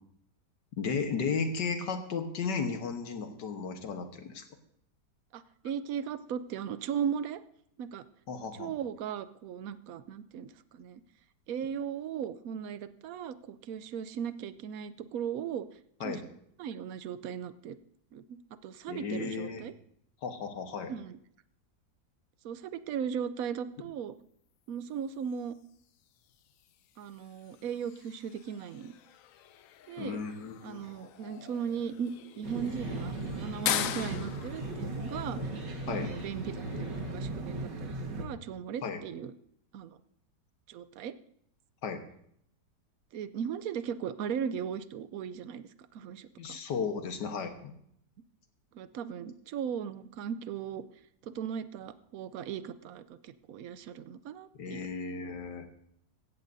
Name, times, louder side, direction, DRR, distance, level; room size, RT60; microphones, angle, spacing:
voice 1, 0.8-4.5 8.3-8.7 16.0-16.2 18.9-19.6 20.2-20.9 30.0-30.8 35.9-36.1 38.8-39.0 41.8-42.0 46.4-47.7 54.6-55.7, left 5 dB, 85° left, 6 dB, 1.9 m, -34 dB
voice 2, 5.3-7.4 7.8-8.0 8.6-11.0 11.5-15.7 16.0-16.2 16.6-17.8 18.1-19.7 20.9-21.2 22.4-24.2 24.7-25.5 27.0-28.9 29.9-30.2 30.6-35.5 35.9-39.3 39.7-40.0 40.7-41.1 43.1-46.6 48.7-50.8 51.2-54.9, right 8 dB, 65° right, 13 dB, 1.0 m, -37 dB
sound 1, 25.2-37.1, left 11 dB, 70° left, 0.8 m, -41 dB
sound 2, 32.4-38.2, right 2 dB, 85° right, 2.3 m, -37 dB
16.5 x 13.5 x 2.7 m, 0.70 s
omnidirectional pair, 1.8 m